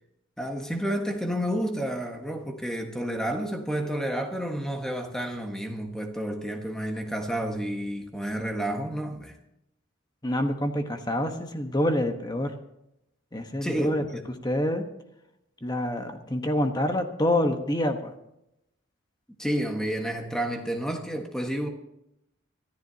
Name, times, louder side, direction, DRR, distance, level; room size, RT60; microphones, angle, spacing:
voice 1, 0.4-9.3 13.6-14.1 19.4-21.7, right 1 dB, 5° left, 1.4 m, -30 dB
voice 2, 10.2-12.5 13.3-14.8 15.6-18.1, left 1 dB, 20° left, 1.2 m, -27 dB
25.5 x 14.0 x 2.9 m
head